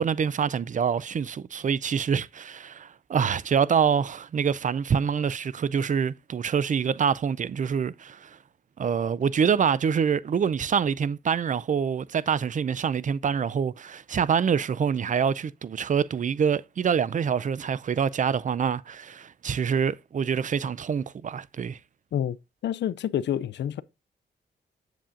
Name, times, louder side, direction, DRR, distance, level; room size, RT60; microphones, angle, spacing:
voice 1, 0.0-8.4 8.8-21.8, right 7 dB, 45° right, 0.4 m, -26 dB
voice 2, 22.6-23.8, left 10 dB, 70° left, 0.5 m, -28 dB
7.6 x 7.1 x 2.5 m
cardioid pair, 65°, 19 cm